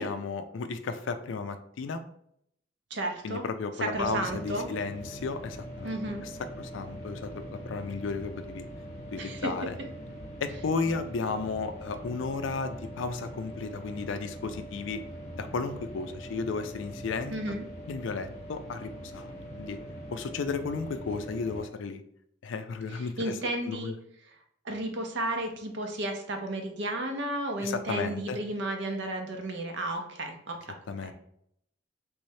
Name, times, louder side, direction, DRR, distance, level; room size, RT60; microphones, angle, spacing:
voice 1, 0.0-2.0 3.2-5.9 6.6-8.7 9.1-9.7 10.4-15.0 15.4-17.3 17.9-19.8 20.1-22.0 22.4-23.3 23.7-23.9 27.6-28.4 30.9-31.1, left 4 dB, 70° left, 9 dB, 0.4 m, -34 dB
voice 2, 2.9-3.4 3.8-4.7 5.8-6.2 9.2-9.5 17.3-17.7 22.9-23.9 24.2-24.4 24.6-31.1, right 1 dB, 60° right, 3 dB, 0.7 m, -33 dB
sound 1, 3.9-21.6, equal, 35° left, 0.8 m, -42 dB
3.4 x 3.1 x 2.7 m, 0.71 s
head